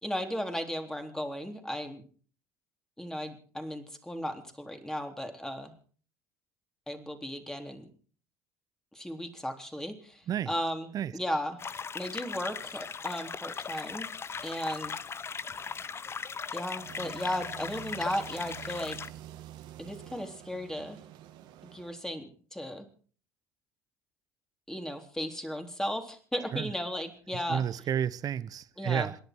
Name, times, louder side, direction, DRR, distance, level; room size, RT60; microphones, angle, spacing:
voice 1, 0.0-2.0 3.0-5.7 6.9-7.9 8.9-11.6 11.9-14.1 14.4-15.0 16.5-19.0 19.8-21.0 21.6-22.9 24.7-27.6 28.8-29.1, equal, 5° left, 3.7 m, -35 dB
sound 1, 11.6-19.1, left 6 dB, 30° left, 0.8 m, -39 dB
sound 2, 16.7-22.1, right 12 dB, 65° right, 1.8 m, -47 dB
voice 2, 27.3-29.2, right 9 dB, 50° right, 0.9 m, -31 dB
27.0 x 11.0 x 4.7 m
hypercardioid pair, 60°, 8 cm